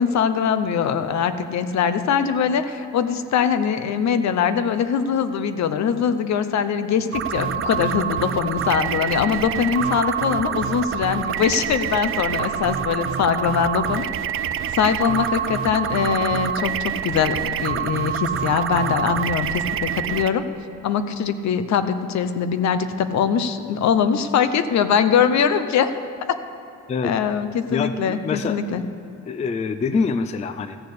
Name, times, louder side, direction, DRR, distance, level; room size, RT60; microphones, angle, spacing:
voice 1, 0.0-14.1 14.7-20.5 20.8-25.9 27.0-28.8, left 7 dB, 65° left, 11 dB, 0.7 m, -22 dB
sound 1, 7.1-20.3, right 9 dB, 45° right, 0.4 m, -26 dB
voice 2, 27.7-28.9 29.3-30.8, left 4 dB, 25° left, 11 dB, 0.3 m, -25 dB
14.5 x 6.7 x 8.2 m, 2.7 s
wide cardioid pair, 170°, 29 cm